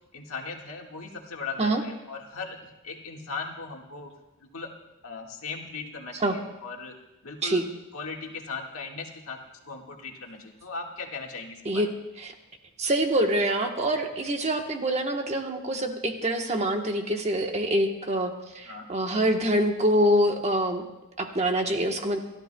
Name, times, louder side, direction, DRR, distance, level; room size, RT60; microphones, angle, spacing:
voice 1, 0.1-2.6 2.8-4.1 4.4-4.7 5.0-7.0 7.2-7.7 7.9-11.8 18.7-18.9, left 4 dB, 70° left, 1 dB, 1.7 m, -38 dB
voice 2, 12.8-20.8 21.2-22.2, right 1 dB, 30° right, 3 dB, 1.1 m, -25 dB
29.0 x 13.0 x 2.2 m, 0.95 s
head